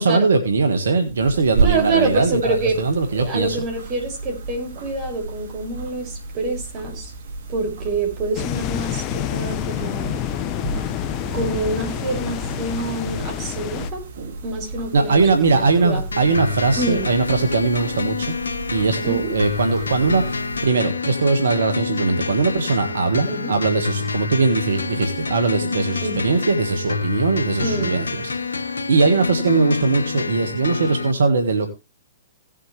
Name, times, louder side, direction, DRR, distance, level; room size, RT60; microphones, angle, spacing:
voice 1, 0.0-3.6 14.9-18.3 18.7-28.6 28.9-31.7, right 4 dB, 80° right, 7 dB, 1.6 m, -20 dB
sound 1, 1.0-20.7, right 4 dB, 65° right, 2.2 m, -32 dB
voice 2, 1.6-2.8 3.2-7.1 7.5-10.1 11.3-14.0 14.4-16.0 16.8-17.1 19.0-19.3 23.3-23.5 26.0-26.3 27.6-27.9, right 2 dB, 35° right, 2 dB, 6.1 m, -26 dB
sound 2, 8.3-13.9, left 11 dB, 35° left, 0.9 m, -28 dB
sound 3, 16.1-31.1, left 4 dB, 90° left, 1.4 m, -27 dB
17.5 x 7.7 x 3.3 m, 0.27 s
hypercardioid pair, 120°, 0 cm